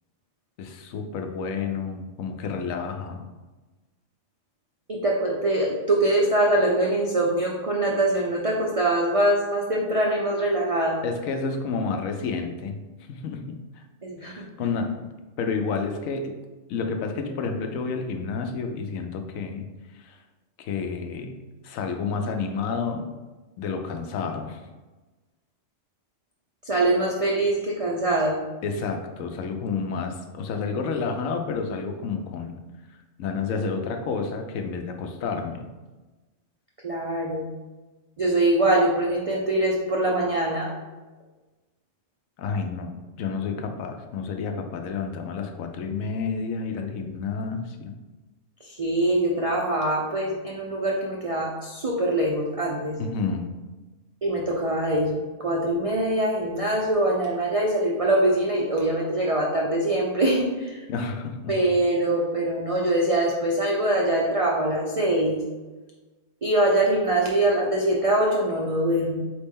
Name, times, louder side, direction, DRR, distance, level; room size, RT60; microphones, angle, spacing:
voice 1, 0.6-3.3 11.0-12.8 13.1-13.8 14.2-15.1 15.4-16.4 16.7-19.7 20.0-20.2 20.6-21.4 21.6-23.1 23.6-24.6 28.6-32.5 33.2-35.7 42.4-47.9 53.0-53.5 60.9-61.5, left 5 dB, 85° left, 5 dB, 1.0 m, -30 dB
voice 2, 4.9-11.0 14.0-14.5 26.7-28.4 36.8-37.5 38.2-40.7 48.8-52.9 54.2-60.5 61.5-65.4 66.4-69.2, right 1 dB, 60° right, -2 dB, 0.3 m, -23 dB
4.2 x 3.4 x 3.5 m, 1.2 s
omnidirectional pair, 1.4 m